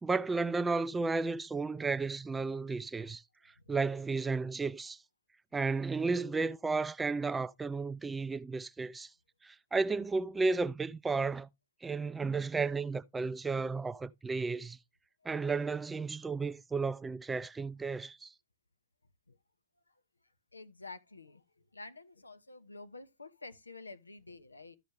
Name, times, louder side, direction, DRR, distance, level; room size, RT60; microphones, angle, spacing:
voice 1, 0.0-3.2 3.7-5.0 5.5-9.1 9.4-11.5 11.8-14.8 15.2-18.3, right 4 dB, 10° right, 0.4 m, -33 dB
voice 2, 4.3-4.6 19.3-19.4 20.5-21.4 21.7-24.8, left 3 dB, 85° left, 0.8 m, -49 dB
13.5 x 5.0 x 3.1 m
figure-of-eight pair, 100°, 0 cm